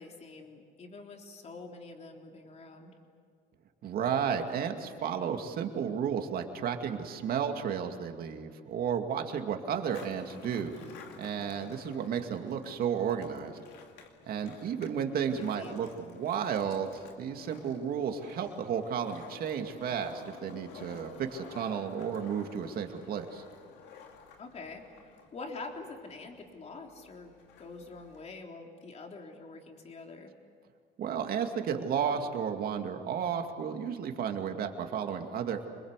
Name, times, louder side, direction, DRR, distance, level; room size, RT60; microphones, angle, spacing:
voice 1, 0.0-2.9 15.3-15.8 24.4-30.3, left 3 dB, 40° left, 2 dB, 3.6 m, -46 dB
voice 2, 3.8-10.8 11.2-13.6 14.3-23.4 31.0-35.7, right 7 dB, 60° right, 5 dB, 2.4 m, -33 dB
Skateboard, 9.8-28.4, left 6 dB, 90° left, 2.4 m, -52 dB
27.0 x 21.5 x 8.3 m, 2.1 s
cardioid pair, 110°, 17 cm